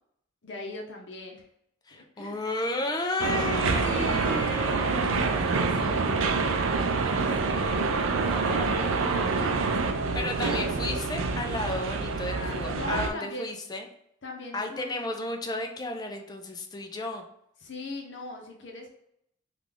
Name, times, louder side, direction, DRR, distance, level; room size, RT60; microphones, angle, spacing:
voice 1, 0.4-1.4 1.9-2.4 3.8-4.8 5.5-10.6 12.2-13.5 14.2-14.9 17.6-18.9, left 2 dB, 60° left, 1 dB, 0.8 m, -41 dB
voice 2, 1.8-5.9 10.1-13.9 14.5-17.2, left 2 dB, 20° left, 3 dB, 0.4 m, -33 dB
sound 1, 3.2-13.1, right 4 dB, 80° right, 0.4 m, -27 dB
Giggle, 5.1-6.6 7.4-9.7, equal, ahead, 1.0 m, -45 dB
3.2 x 2.4 x 3.8 m, 0.73 s
head